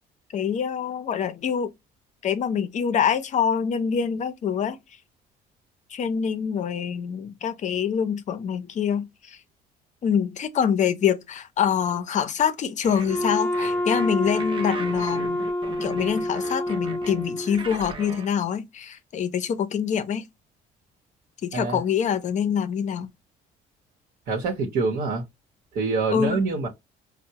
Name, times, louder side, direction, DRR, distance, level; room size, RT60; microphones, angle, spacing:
voice 1, 0.3-1.7 2.2-4.8 5.9-9.4 10.0-15.4 15.8-20.3 21.4-23.1 26.1-26.4, left 8 dB, 45° left, 0.6 m, -25 dB
sound 1, 12.8-18.3, right 4 dB, 30° right, 0.6 m, -39 dB
Wind instrument woodwind instrument, 13.0-17.8, left 1 dB, 10° left, 0.8 m, -28 dB
voice 2, 24.3-25.3 25.7-26.7, right 4 dB, 65° right, 0.9 m, -25 dB
4.3 x 2.1 x 2.8 m
cardioid pair, 110°, 17 cm